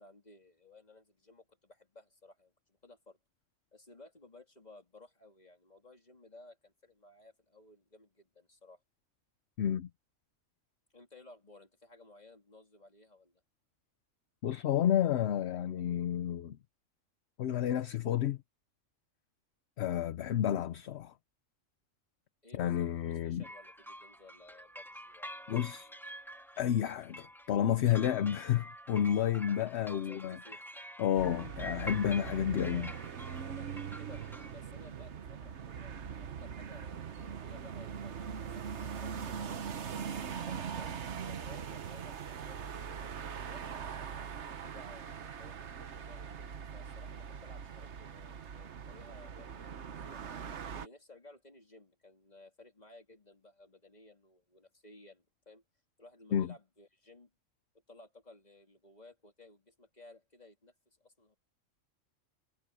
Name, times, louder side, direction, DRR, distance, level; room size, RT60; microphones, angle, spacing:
voice 1, 0.0-3.2 3.7-8.8 10.9-13.4 22.4-26.0 29.9-30.6 32.4-33.0 33.4-40.0 40.5-43.6 44.4-50.3 50.7-55.6 56.0-57.3 57.9-61.4, left 2 dB, 30° left, 3.4 m, -57 dB
voice 2, 9.6-9.9 14.4-16.6 17.4-18.4 19.8-21.1 22.5-23.4 25.5-25.9 26.6-30.4 31.0-32.9 56.3-56.5, left 10 dB, 60° left, 0.9 m, -30 dB
sound 1, 23.4-34.5, equal, ahead, 1.8 m, -48 dB
sound 2, 31.1-50.9, right 7 dB, 60° right, 1.3 m, -41 dB
omnidirectional pair, 1.4 m